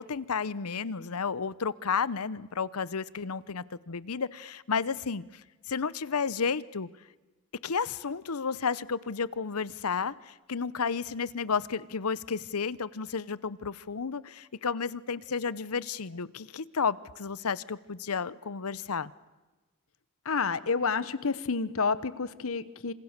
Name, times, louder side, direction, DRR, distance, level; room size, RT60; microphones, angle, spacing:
voice 1, 0.0-5.2 5.7-6.9 7.6-19.1, left 5 dB, 90° left, 19 dB, 0.8 m, -32 dB
voice 2, 20.3-22.9, left 4 dB, 70° left, 16 dB, 1.1 m, -29 dB
27.5 x 27.0 x 6.7 m, 1.2 s
head